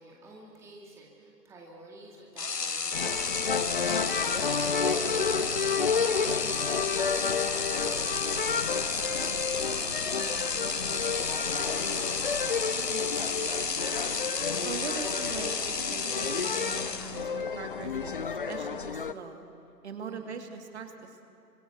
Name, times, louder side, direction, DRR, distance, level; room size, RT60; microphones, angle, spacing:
voice 1, 0.0-12.3 20.0-20.4, right 2 dB, 5° right, -2 dB, 2.0 m, -51 dB
sound 1, 2.4-17.4, left 4 dB, 75° left, 1.5 m, -32 dB
sound 2, 2.9-19.1, left 5 dB, 35° left, 0.6 m, -31 dB
voice 2, 12.8-13.4 14.6-18.1 18.4-19.5 19.8-21.3, right 5 dB, 40° right, 5 dB, 2.4 m, -41 dB
29.5 x 25.5 x 6.9 m, 2.5 s
figure-of-eight pair, 135°, 49 cm